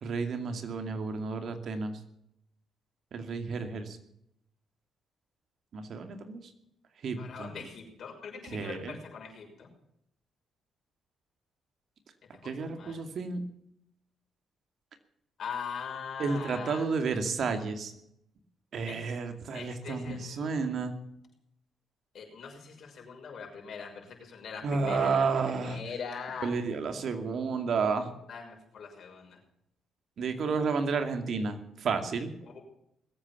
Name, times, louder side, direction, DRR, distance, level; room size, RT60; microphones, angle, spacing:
voice 1, 0.0-1.9 3.1-4.0 5.7-6.5 7.0-7.5 8.5-9.0 12.4-13.4 16.2-17.9 18.7-20.9 24.6-25.8 26.4-28.1 30.2-32.3, right 4 dB, 60° right, 7 dB, 2.4 m, -31 dB
voice 2, 7.2-9.7 12.3-13.0 15.4-16.9 18.8-19.2 19.5-20.7 22.1-26.5 28.3-29.4 32.4-32.6, left 6 dB, 60° left, 1 dB, 6.3 m, -41 dB
20.5 x 8.8 x 7.2 m, 0.76 s
cardioid pair, 90°, 0 cm